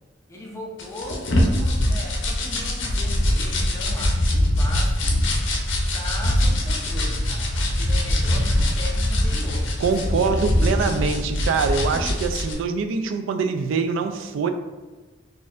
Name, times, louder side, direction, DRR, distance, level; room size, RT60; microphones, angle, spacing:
voice 1, 0.3-5.2 5.9-11.0, left 1 dB, 15° left, -2 dB, 0.5 m, -38 dB
sound 1, 0.8-12.5, left 1 dB, 70° left, 0.6 m, -22 dB
voice 2, 9.8-14.5, right 5 dB, 75° right, 8 dB, 0.3 m, -24 dB
4.0 x 2.5 x 2.4 m, 1.3 s
head